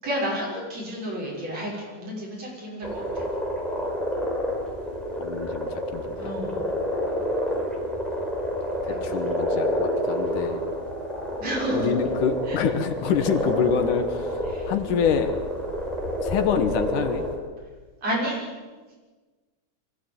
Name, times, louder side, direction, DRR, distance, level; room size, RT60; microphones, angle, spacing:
voice 1, 0.0-3.2 6.2-6.6 8.9-9.0 11.4-11.9 12.5-12.6 14.5-14.7 18.0-18.4, equal, 50° right, -3 dB, 7.6 m, -30 dB
sound 1, 2.8-17.4, equal, ahead, 4.8 m, -28 dB
voice 2, 5.2-6.3 8.8-10.6 11.7-15.3 16.2-17.2, left 7 dB, 75° left, 9 dB, 2.6 m, -26 dB
23.0 x 16.0 x 9.2 m, 1.3 s
omnidirectional pair, 3.8 m